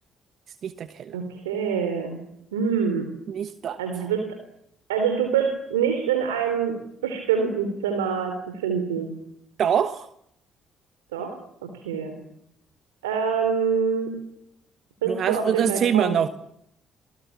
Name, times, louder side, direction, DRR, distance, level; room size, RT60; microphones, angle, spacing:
voice 1, 0.6-1.2 3.3-4.1 9.6-10.1 15.0-16.3, right 9 dB, 60° right, 12 dB, 1.2 m, -25 dB
voice 2, 1.1-2.2 2.5-3.1 3.8-4.2 4.9-6.8 7.0-9.1 11.1-12.1 13.0-14.1 15.0-16.2, right 6 dB, 90° right, 6 dB, 3.2 m, -25 dB
28.0 x 20.0 x 7.3 m, 0.76 s
hypercardioid pair, 50°, 0 cm